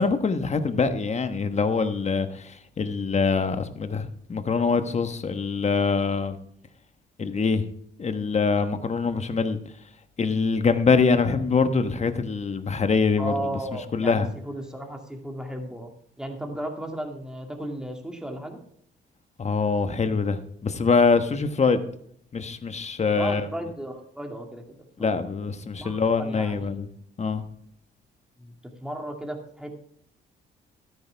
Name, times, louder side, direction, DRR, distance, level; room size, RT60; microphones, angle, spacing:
voice 1, 0.0-6.4 7.2-7.6 8.0-9.6 10.2-13.5 13.9-14.3 19.4-21.8 22.3-23.5 25.0-26.9 27.2-27.4, left 4 dB, 35° left, 1.2 m, -24 dB
voice 2, 13.2-15.9 16.2-18.6 23.1-24.6 25.0-25.2 25.8-26.7 28.4-28.5 28.8-29.8, right 1 dB, 5° right, 2.4 m, -35 dB
13.0 x 10.5 x 3.5 m
cardioid pair, 90°, 20 cm